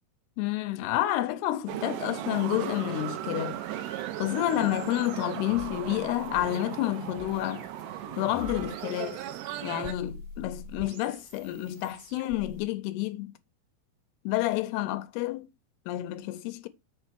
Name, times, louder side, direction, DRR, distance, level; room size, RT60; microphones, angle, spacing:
voice 1, 0.4-3.6 4.2-7.7 8.2-9.2 9.6-13.3 14.3-15.5 15.9-16.7, left 15 dB, 85° left, 2.6 m, -29 dB
sound 1, 1.7-9.9, right 13 dB, 80° right, 2.8 m, -37 dB
sound 2, 2.9-12.6, right 1 dB, 60° right, 1.4 m, -47 dB
6.7 x 4.5 x 5.9 m
omnidirectional pair, 4.7 m